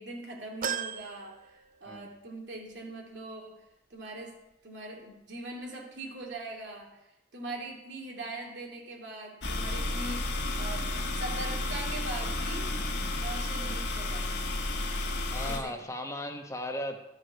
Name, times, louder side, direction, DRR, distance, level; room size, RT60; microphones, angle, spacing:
voice 1, 0.0-3.6 3.9-4.3 4.6-6.9 7.3-12.7 13.2-14.5 15.5-15.8, right 2 dB, 80° right, 0 dB, 2.7 m, -41 dB
sound 1, 0.6-2.3 2.7-2.8 4.0-4.1, right 8 dB, 50° right, 0.6 m, -37 dB
sound 2, 9.4-15.6, left 2 dB, 70° left, 1.6 m, -32 dB
voice 2, 15.3-17.0, left 1 dB, 15° left, 4 dB, 1.1 m, -36 dB
13.0 x 6.4 x 6.9 m, 0.91 s
head